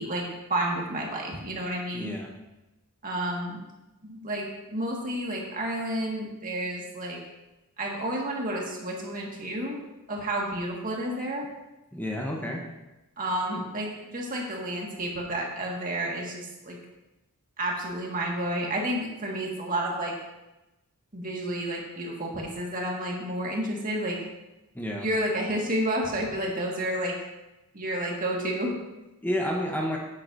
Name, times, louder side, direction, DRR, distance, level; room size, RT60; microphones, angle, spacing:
voice 1, 0.0-2.1 3.0-3.6 4.0-7.2 7.8-9.8 10.1-11.5 13.2-16.8 17.6-20.1 21.1-24.2 25.0-27.2 27.7-28.7, right 1 dB, 40° right, -2 dB, 1.8 m, -30 dB
voice 2, 1.9-2.3 11.9-12.6 24.7-25.1 29.2-30.0, equal, 10° left, 0 dB, 0.9 m, -30 dB
9.7 x 9.5 x 2.7 m, 1.0 s
head